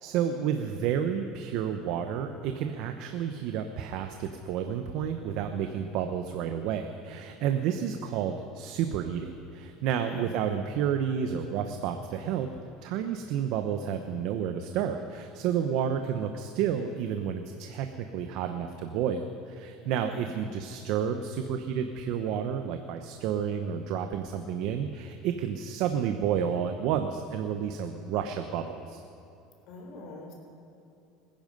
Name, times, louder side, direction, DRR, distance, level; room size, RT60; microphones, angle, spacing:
voice 1, 0.0-12.5 12.8-29.0, right 8 dB, 65° right, 7 dB, 0.9 m, -30 dB
voice 2, 9.9-10.3 19.8-20.3 29.7-30.3, left 2 dB, 60° left, 1 dB, 3.9 m, -45 dB
25.5 x 10.5 x 5.3 m, 2.7 s
supercardioid pair, 130°, 0 cm